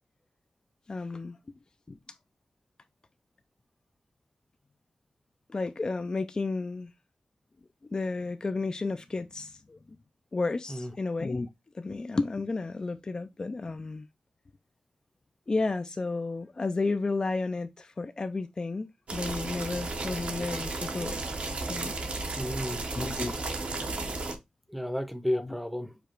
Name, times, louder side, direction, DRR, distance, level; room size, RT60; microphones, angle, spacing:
voice 1, 0.9-1.4 1.9-2.0 5.5-6.9 7.8-9.8 10.3-11.5 11.7-14.1 15.5-21.2 21.7-21.9 23.0-23.3 25.3-25.5, left 3 dB, 35° left, 0.4 m, -32 dB
sound 1, 19.1-24.3, right 3 dB, 65° right, 1.0 m, -34 dB
voice 2, 22.3-22.9 24.7-26.0, left 1 dB, ahead, 0.7 m, -32 dB
5.0 x 2.4 x 4.4 m
wide cardioid pair, 85°, 2 cm